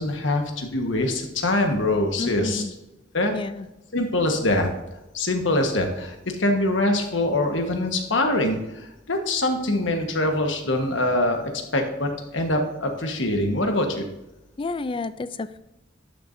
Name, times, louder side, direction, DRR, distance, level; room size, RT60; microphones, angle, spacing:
voice 1, 0.0-2.6 3.1-3.3 3.9-4.7 5.1-8.6 9.1-14.0, left 1 dB, 75° left, 4 dB, 1.4 m, -24 dB
voice 2, 2.2-2.7 3.3-3.7 14.6-15.6, left 3 dB, 25° left, 13 dB, 0.3 m, -30 dB
11.5 x 6.8 x 2.7 m, 0.94 s
head